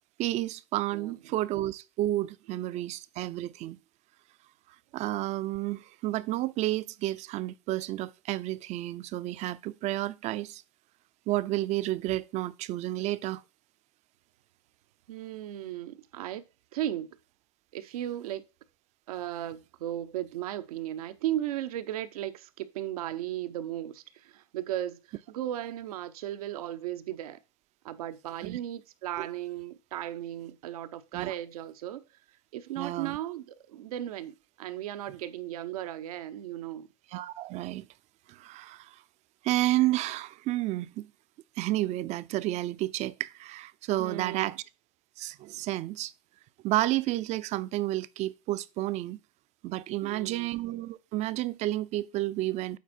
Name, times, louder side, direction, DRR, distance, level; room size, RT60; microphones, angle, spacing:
voice 1, 0.2-3.8 4.9-10.6 11.3-13.4 28.4-28.6 29.2-29.3 31.1-31.3 32.8-33.2 37.1-37.9 38.3-39.0 39.4-41.1 41.6-44.6 45.2-46.1 46.6-49.2 49.6-52.8, right 16 dB, 35° right, 0.5 m, -31 dB
voice 2, 0.9-1.4 15.1-16.4 16.7-17.1 17.7-18.4 19.1-27.4 27.8-32.0 32.5-36.9 44.0-44.6 50.0-50.5, right 12 dB, 80° right, 0.8 m, -36 dB
8.3 x 4.3 x 4.3 m
supercardioid pair, 120°, 19 cm